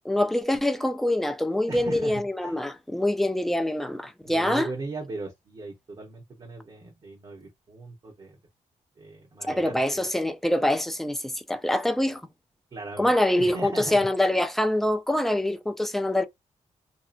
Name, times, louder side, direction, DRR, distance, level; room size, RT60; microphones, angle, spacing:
voice 1, 0.1-4.7 9.5-12.2 13.0-16.3, left 1 dB, ahead, 0.4 m, -25 dB
voice 2, 1.7-2.6 4.2-8.4 9.0-10.0 12.7-14.5, right 3 dB, 40° right, 0.9 m, -38 dB
2.7 x 2.3 x 2.5 m
cardioid pair, 105°, 13 cm